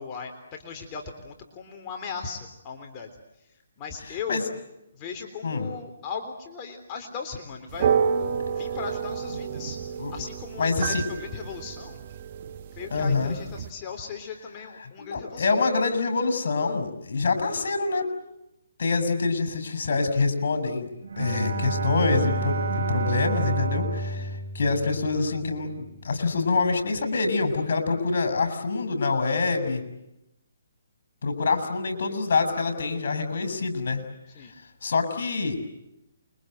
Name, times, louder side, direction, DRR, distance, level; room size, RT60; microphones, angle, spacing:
voice 1, 0.0-3.1 3.8-4.4 4.9-7.9 8.6-9.8 10.1-12.0 12.7-15.5 24.1-24.3 34.3-34.5, left 5 dB, 25° left, 3 dB, 3.6 m, -37 dB
sound 1, 7.7-13.7, right 7 dB, 40° right, 1.6 m, -30 dB
voice 2, 10.6-11.0 12.9-13.4 15.0-18.0 18.8-20.9 21.2-29.8 31.2-34.0 34.8-35.6, left 4 dB, 65° left, 8 dB, 6.8 m, -26 dB
Bowed string instrument, 21.0-25.6, right 2 dB, 70° right, 5.9 m, -29 dB
29.0 x 23.5 x 7.9 m, 0.88 s
hypercardioid pair, 155°, 0 cm